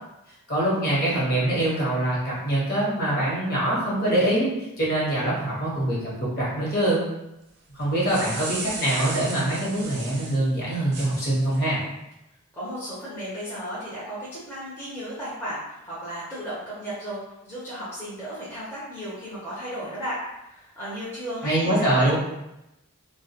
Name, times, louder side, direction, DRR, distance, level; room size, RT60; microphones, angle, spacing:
voice 1, 0.5-4.5 4.8-7.0 7.7-11.8 21.4-22.1, right 1 dB, 45° left, -7 dB, 0.9 m, -24 dB
sound 1, 7.8-10.4 10.9-11.6, right 3 dB, 50° right, 0.5 m, -36 dB
voice 2, 12.5-17.2 17.4-22.1, equal, 10° left, -11 dB, 0.5 m, -34 dB
2.2 x 2.1 x 2.7 m, 0.90 s
head